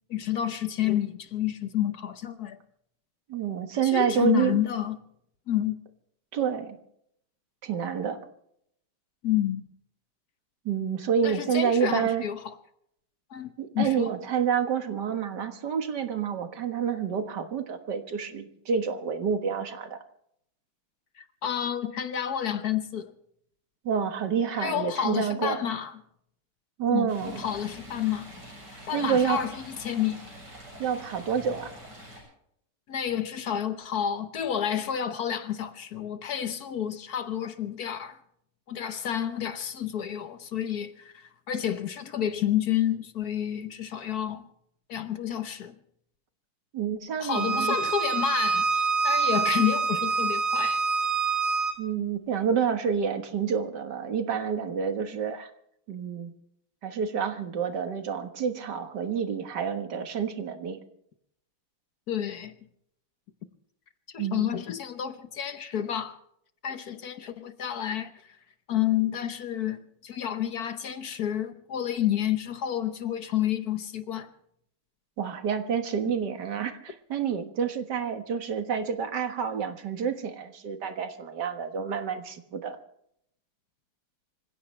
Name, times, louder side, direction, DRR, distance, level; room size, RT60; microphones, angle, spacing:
voice 1, 0.1-2.6 3.8-5.0 5.5-5.8 9.2-9.7 11.2-12.5 13.3-14.1 21.2-23.1 24.6-26.0 26.9-28.3 28.9-30.2 32.9-38.2 38.7-44.5 44.9-45.8 47.2-50.8 62.1-62.5 64.1-66.2 66.6-68.1 68.7-74.3, left 10 dB, 55° left, 1.2 m, -30 dB
voice 2, 3.3-4.6 6.3-6.8 7.6-8.2 10.7-12.2 13.6-20.0 23.8-25.6 26.8-27.4 28.9-29.4 30.8-31.7 46.7-47.8 51.8-55.5 55.9-56.3 56.8-60.8 64.2-64.5 75.2-82.8, right 7 dB, 55° right, 1.9 m, -28 dB
Stream, 27.1-32.2, equal, 75° right, 8.1 m, -45 dB
Bowed string instrument, 47.3-51.7, right 5 dB, 30° right, 1.9 m, -26 dB
26.0 x 16.0 x 3.3 m
omnidirectional pair, 2.4 m